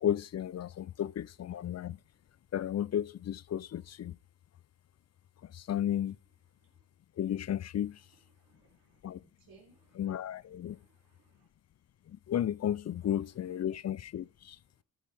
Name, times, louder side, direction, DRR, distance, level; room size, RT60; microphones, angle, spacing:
voice 1, 0.0-2.0 2.5-4.1 5.5-6.2 7.2-8.0 9.0-9.2 10.0-10.8 12.3-14.6, left 10 dB, 50° left, 0.4 m, -33 dB
voice 2, 8.1-9.0 9.4-9.9 10.7-11.5 13.0-13.1, right 4 dB, 85° right, 3.5 m, -64 dB
13.5 x 6.5 x 3.4 m
cardioid pair, 75°, 35 cm